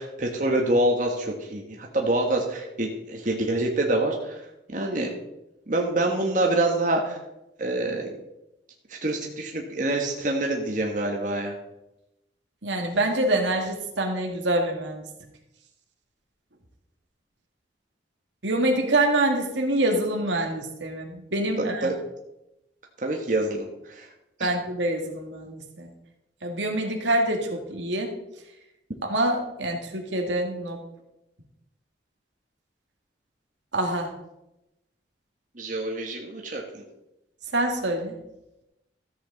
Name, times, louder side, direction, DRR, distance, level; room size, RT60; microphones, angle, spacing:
voice 1, 0.0-4.4 4.7-5.1 5.7-7.2 7.6-8.1 9.0-11.6 21.6-21.9 23.0-24.1 24.4-24.6 35.5-36.8, right 1 dB, 45° right, 1 dB, 1.4 m, -26 dB
voice 2, 12.6-15.0 18.4-21.9 24.4-25.9 26.4-28.1 29.0-30.8 33.7-34.1 37.5-38.2, right 1 dB, 85° right, 2 dB, 1.9 m, -26 dB
13.5 x 8.0 x 4.0 m, 0.88 s
head